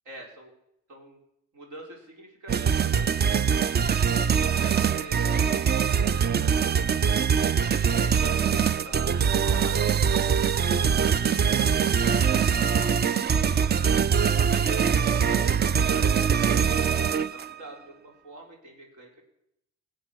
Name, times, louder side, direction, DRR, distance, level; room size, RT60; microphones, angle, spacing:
voice 1, 0.0-0.5 0.9-1.2 1.5-4.0 4.6-6.8 8.0-11.6 14.5-19.2, right 1 dB, 75° right, 1 dB, 4.4 m, -45 dB
sound 1, 2.5-17.5, right 7 dB, 35° right, 0.5 m, -23 dB
18.0 x 8.1 x 6.3 m, 0.79 s
cardioid pair, 90°, 30 cm